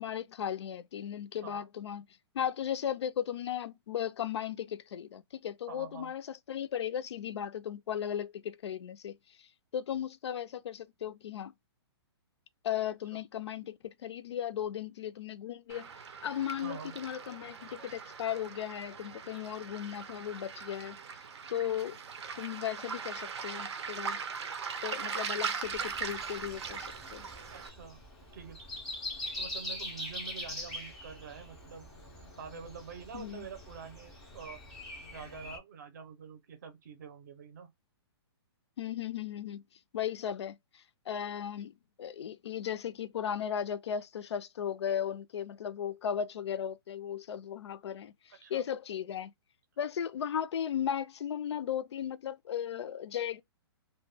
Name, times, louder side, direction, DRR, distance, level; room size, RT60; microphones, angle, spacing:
voice 1, 0.0-2.0 2.3-9.5 9.7-11.5 12.6-15.9 16.2-21.0 21.5-22.0 22.4-24.2 24.8-27.3 33.1-33.5 38.8-39.6 39.9-49.3 49.8-53.4, left 9 dB, 80° left, 0.4 m, -36 dB
voice 2, 5.7-6.1 13.1-13.2 16.6-17.0 27.5-28.0 28.3-28.6 29.4-31.9 32.4-34.6 35.1-37.7 48.3-48.7, right 6 dB, 40° right, 0.5 m, -46 dB
Waves surf, 15.7-27.7, right 6 dB, 90° right, 0.5 m, -40 dB
Breathing, 25.6-35.6, left 1 dB, ahead, 0.3 m, -43 dB
2.2 x 2.1 x 3.2 m
hypercardioid pair, 175°, 14 cm